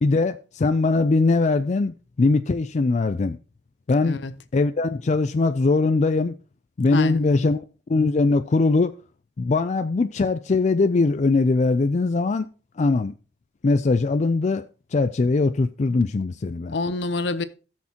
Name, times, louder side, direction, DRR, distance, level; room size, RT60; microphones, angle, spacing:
voice 1, 0.0-3.4 3.9-4.2 4.5-6.4 6.8-7.6 7.9-8.9 9.4-12.5 12.8-13.1 13.6-14.6 14.9-16.8, left 3 dB, 40° left, 0.4 m, -21 dB
voice 2, 6.9-7.5 16.7-17.4, left 3 dB, 70° left, 0.7 m, -27 dB
18.0 x 6.4 x 2.9 m
head